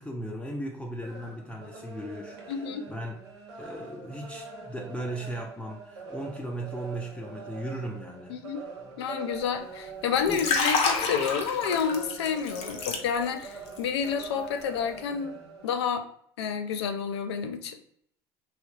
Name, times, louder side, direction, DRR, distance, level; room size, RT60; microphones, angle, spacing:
voice 1, 0.0-3.2 3.6-8.5 10.3-10.5, right 1 dB, 10° left, 0 dB, 0.4 m, -37 dB
sound 1, 0.8-15.9, right 3 dB, 90° right, 0.7 m, -44 dB
voice 2, 2.5-2.9 8.3-8.6 9.0-15.4 15.6-16.1 16.4-17.8, left 7 dB, 85° left, 8 dB, 0.4 m, -29 dB
Liquid, 10.1-13.5 13.8-14.1, left 4 dB, 50° left, 0.7 m, -28 dB
3.2 x 2.7 x 2.3 m, 0.66 s
hypercardioid pair, 75°, 13 cm